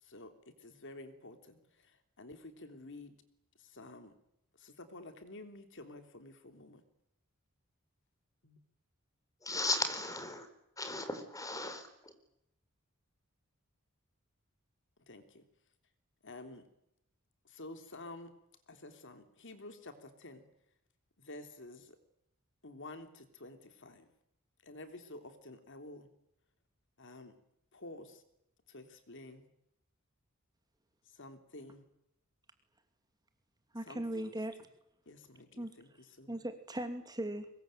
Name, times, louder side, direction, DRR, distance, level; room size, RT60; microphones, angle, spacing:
voice 1, 0.0-3.2 3.6-4.1 4.6-6.9 8.4-8.6 15.1-15.4 16.2-16.6 17.4-18.3 18.7-20.5 21.2-22.0 22.6-24.1 24.6-26.1 27.0-27.3 27.7-28.2 28.7-29.5 31.1-31.9 33.8-34.3 35.0-36.4, left 2 dB, 60° left, 8 dB, 3.2 m, -50 dB
voice 2, 9.4-10.5 10.8-12.1, left 2 dB, 15° left, 8 dB, 4.5 m, -36 dB
voice 3, 33.7-34.6 35.6-35.7 36.3-37.5, right 1 dB, 20° right, 7 dB, 2.7 m, -38 dB
24.5 x 21.5 x 9.1 m, 0.80 s
head